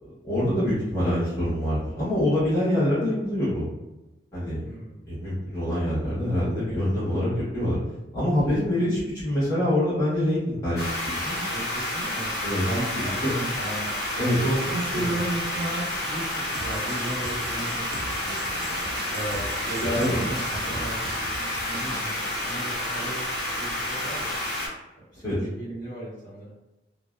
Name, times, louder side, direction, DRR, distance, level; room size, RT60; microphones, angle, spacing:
voice 1, 0.0-3.7 4.3-4.6 5.1-7.8 8.1-11.4 12.4-12.6 12.9-13.3 14.2-14.4 20.0-20.1 25.2-25.3, left 1 dB, 20° left, -13 dB, 1.1 m, -25 dB
voice 2, 4.6-5.0 7.1-7.3 8.5-8.6 11.5-12.3 12.6-18.4 19.1-23.2 23.4-24.3 25.1-26.5, right 1 dB, 45° left, -10 dB, 1.5 m, -34 dB
sound 1, 10.8-24.7, left 1 dB, 60° left, 1.0 m, -30 dB
sound 2, 16.5-22.1, right 3 dB, 60° right, 0.3 m, -40 dB
2.6 x 2.1 x 2.3 m, 1.0 s
head